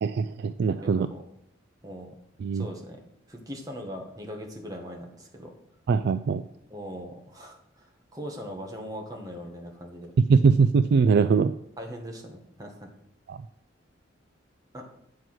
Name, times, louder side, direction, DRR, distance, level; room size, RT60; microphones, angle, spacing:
voice 1, 0.0-1.1 2.4-2.7 5.9-6.4 10.2-11.5 13.3-13.4, right 5 dB, 55° right, 11 dB, 0.3 m, -21 dB
voice 2, 0.8-1.2 1.8-2.1 2.5-3.0 3.3-5.5 6.7-10.1 11.8-12.9 14.7-14.9, equal, 20° right, 1 dB, 1.4 m, -40 dB
9.2 x 4.7 x 6.1 m, 0.74 s
head